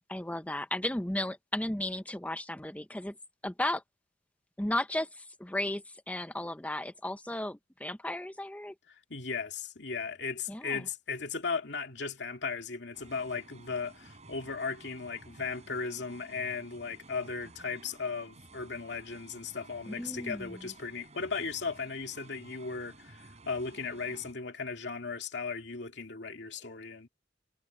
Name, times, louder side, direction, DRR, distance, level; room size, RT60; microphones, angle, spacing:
voice 1, 0.1-3.2 3.4-3.8 4.6-8.7 10.5-10.8 19.9-20.5, left 1 dB, 10° left, 0.8 m, -34 dB
voice 2, 8.9-27.1, left 5 dB, 70° left, 2.5 m, -37 dB
sound 1, 12.9-24.3, right 2 dB, 40° right, 4.5 m, -54 dB
head